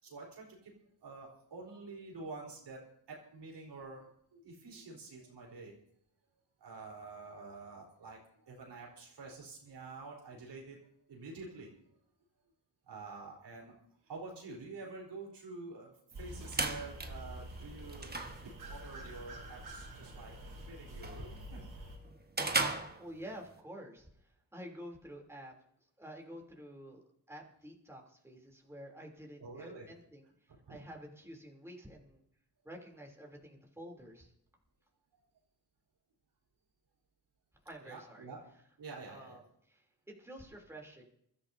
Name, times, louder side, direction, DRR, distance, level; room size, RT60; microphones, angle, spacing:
voice 1, 0.0-0.7 1.0-2.8 3.1-5.8 6.6-11.7 12.9-20.3 20.7-21.6 29.4-29.9 30.5-30.8 37.8-38.4 38.8-39.4, right 3 dB, 85° right, -2 dB, 4.0 m, -48 dB
sound 1, 16.1-23.6, right 3 dB, 25° right, 1.4 m, -39 dB
sound 2, 16.1-22.0, right 1 dB, 65° right, 4.0 m, -47 dB
voice 2, 22.8-25.5 26.0-30.3 30.7-32.2 32.6-34.3 37.6-38.3 39.1-39.4 39.7-41.0, equal, 5° right, 0 dB, 3.2 m, -50 dB
26.5 x 13.0 x 2.7 m, 0.71 s
cardioid pair, 80°, 40 cm